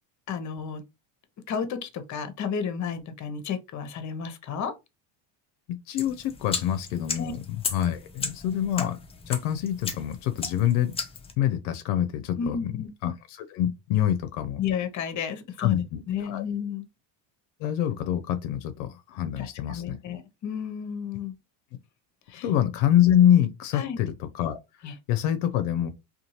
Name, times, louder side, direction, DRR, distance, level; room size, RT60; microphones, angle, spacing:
voice 1, 0.3-0.8 1.5-4.7 7.2-7.3 12.4-12.9 14.6-16.9 19.4-21.3 22.3-22.5 23.7-24.0 24.8-24.9, left 7 dB, 35° left, 0.7 m, -32 dB
voice 2, 5.7-7.4 7.7-9.0 9.3-11.0 11.4-12.7 13.0-14.6 15.6-16.4 17.6-20.0 22.4-24.6 25.1-25.9, left 11 dB, 75° left, 0.6 m, -25 dB
sound 1, 6.0-11.3, left 5 dB, 15° left, 0.3 m, -35 dB
2.6 x 2.4 x 2.9 m
supercardioid pair, 90°, 49 cm